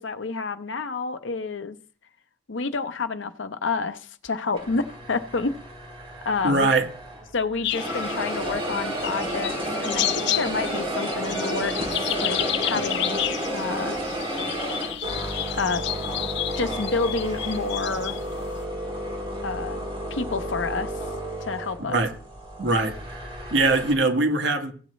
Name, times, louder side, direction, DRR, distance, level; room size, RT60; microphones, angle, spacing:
voice 1, 0.0-1.8 2.5-5.5 6.2-6.7 7.3-13.2 13.5-14.0 15.6-15.9 16.6-18.2 19.4-19.8 20.1-21.1 21.4-22.0, left 4 dB, 85° left, 0.8 m, -29 dB
sound 1, 4.5-7.3 7.7-23.9, right 1 dB, 30° right, 2.8 m, -31 dB
voice 2, 6.4-6.9 21.8-22.1 22.6-24.7, right 2 dB, 70° right, 1.4 m, -22 dB
sound 2, 7.6-18.6, left 12 dB, 65° left, 0.5 m, -31 dB
sound 3, 8.6-13.8, right 1 dB, 85° right, 3.9 m, -47 dB
16.0 x 8.0 x 3.2 m
head